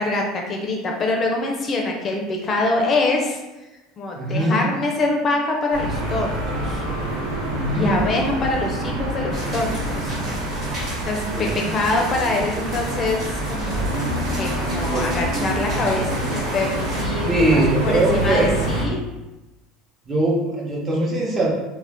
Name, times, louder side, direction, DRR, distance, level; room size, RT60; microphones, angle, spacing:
voice 1, 0.0-3.4 4.0-6.8 7.7-10.1 11.1-19.0, left 2 dB, 35° left, 1 dB, 0.5 m, -24 dB
voice 2, 4.2-4.6 7.5-8.1 11.3-11.7 14.9-15.1 17.3-18.5 20.1-21.5, right 1 dB, 25° right, -3 dB, 0.8 m, -21 dB
sound 1, 5.7-18.8, right 1 dB, 85° right, 0.6 m, -27 dB
sound 2, 5.9-11.0, right 1 dB, 65° right, 1.2 m, -32 dB
sound 3, 9.3-17.0, right 1 dB, 45° right, 1.1 m, -36 dB
2.4 x 2.1 x 3.5 m, 1.0 s
supercardioid pair, 95°, 0 cm